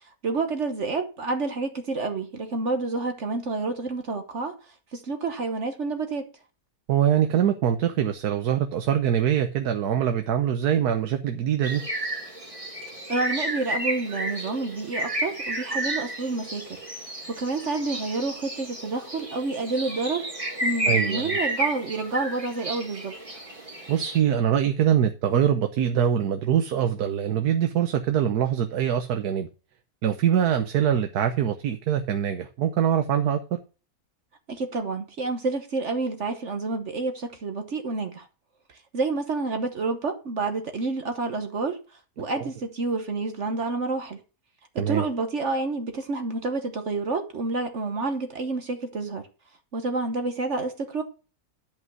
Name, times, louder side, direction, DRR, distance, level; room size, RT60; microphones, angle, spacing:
voice 1, 0.2-4.6 4.9-6.3 13.1-16.8 17.3-20.3 20.6-23.4 34.5-38.3 38.9-41.8 42.2-44.2 44.7-49.3 49.7-51.0, right 3 dB, 55° right, 1.4 m, -29 dB
voice 2, 6.9-11.8 20.9-21.4 23.9-29.5 30.0-33.4 42.2-42.5 44.8-45.0, right 9 dB, 90° right, 1.4 m, -23 dB
sound 1, 11.6-24.2, right 1 dB, 20° right, 2.1 m, -31 dB
11.0 x 5.4 x 6.0 m
omnidirectional pair, 1.6 m